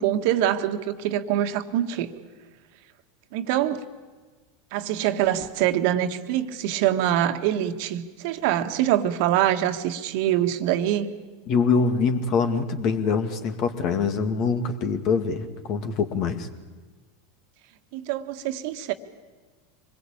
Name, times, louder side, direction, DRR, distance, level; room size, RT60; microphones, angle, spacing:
voice 1, 0.0-2.1 3.3-3.8 4.7-11.1 17.9-18.9, right 11 dB, 60° right, 8 dB, 1.6 m, -24 dB
voice 2, 11.5-16.5, left 5 dB, 50° left, 7 dB, 2.4 m, -24 dB
25.0 x 21.0 x 8.7 m, 1.3 s
hypercardioid pair, 90°, 0 cm